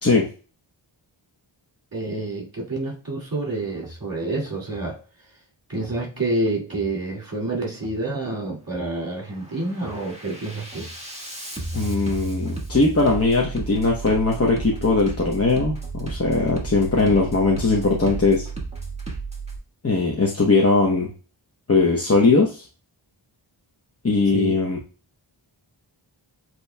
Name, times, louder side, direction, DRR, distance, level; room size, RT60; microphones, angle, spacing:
voice 1, 1.9-5.0 5.7-10.9 24.3-24.5, right 2 dB, 45° right, 2.3 m, -28 dB
Bass drum, 3.7-4.0 4.5-4.9 5.7-6.0 6.5-6.9 7.7-8.0 8.5-9.0 9.4-19.6, right 3 dB, 15° right, 1.5 m, -34 dB
voice 2, 11.7-18.5 19.8-21.1 21.7-22.7 24.0-24.8, left 3 dB, 30° left, 0.8 m, -20 dB
8.1 x 3.0 x 2.2 m
wide cardioid pair, 55°, 47 cm